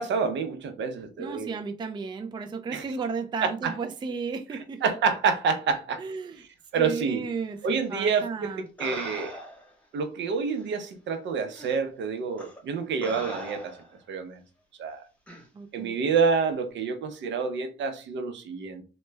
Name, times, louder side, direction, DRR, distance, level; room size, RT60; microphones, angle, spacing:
voice 1, 0.0-1.5 2.7-2.8 3.4-3.7 4.8-6.0 6.7-7.2 7.6-9.3 9.9-13.8 14.1-14.4 14.8-15.0 15.7-18.8, right 5 dB, 70° right, 0.7 m, -28 dB
voice 2, 1.2-4.8 6.0-6.4 6.8-8.7 15.5-16.0, right 5 dB, 25° right, 0.4 m, -34 dB
sound 1, 8.1-8.3 8.8-9.7 10.6-10.7 11.5-11.7 12.4-12.6 13.0-14.0 15.3-15.5, equal, 5° left, 0.9 m, -40 dB
3.0 x 2.1 x 3.3 m
cardioid pair, 90°, 20 cm